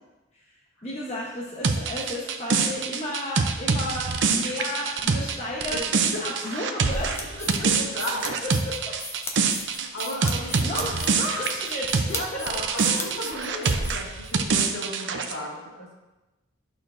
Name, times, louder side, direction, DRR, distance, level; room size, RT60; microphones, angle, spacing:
voice 1, 0.8-7.2 7.6-7.7 8.6-9.0 10.4-12.4, left 1 dB, 30° left, -4 dB, 1.0 m, -33 dB
sound 1, 1.6-12.2 12.5-15.3, right 5 dB, 60° right, 0.6 m, -25 dB
sound 2, 6.9-14.3, left 2 dB, 10° left, 0.6 m, -37 dB
voice 2, 7.2-8.4 9.7-11.1 12.0-15.9, equal, 70° left, -5 dB, 2.3 m, -35 dB
11.5 x 6.2 x 2.6 m, 1.1 s
head